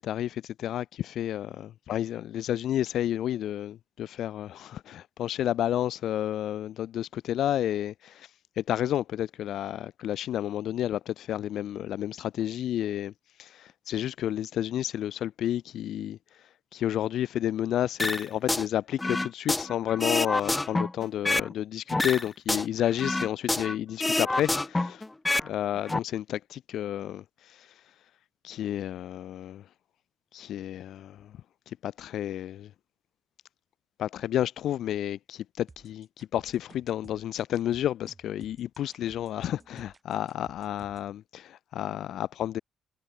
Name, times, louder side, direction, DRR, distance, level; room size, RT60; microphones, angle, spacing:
voice 1, 0.0-8.3 8.6-13.1 13.4-25.0 25.4-27.8 28.4-29.6 30.3-31.3 31.7-32.7 34.0-42.6, left 11 dB, 75° left, 1.0 m, -31 dB
sound 1, 18.0-18.7 19.0-21.5 21.9-23.7 24.0-25.5 25.8-26.0, left 2 dB, 15° left, 1.5 m, -27 dB
sound 2, 35.7-41.1, right 3 dB, 25° right, 7.9 m, -54 dB
cardioid pair, 90°, 0 cm